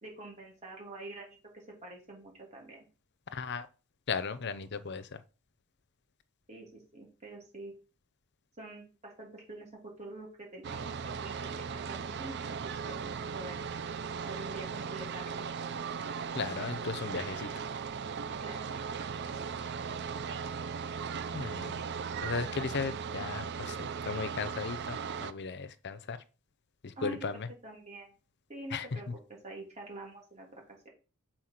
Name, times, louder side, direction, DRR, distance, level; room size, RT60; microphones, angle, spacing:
voice 1, 0.0-2.8 6.5-7.7 8.6-9.7 10.0-10.9 11.2-12.4 12.8-13.6 14.2-15.8 18.4-18.8 27.0-27.3 27.6-28.1 28.5-30.9, right 2 dB, 30° right, 3.0 m, -46 dB
voice 2, 3.3-3.7 4.1-5.2 16.3-17.5 21.3-21.7 22.2-23.8 24.0-26.2 26.8-27.5 28.7-28.9, left 5 dB, 50° left, 0.6 m, -36 dB
sound 1, 10.6-25.3, right 6 dB, 50° right, 0.4 m, -38 dB
6.4 x 4.4 x 5.8 m
head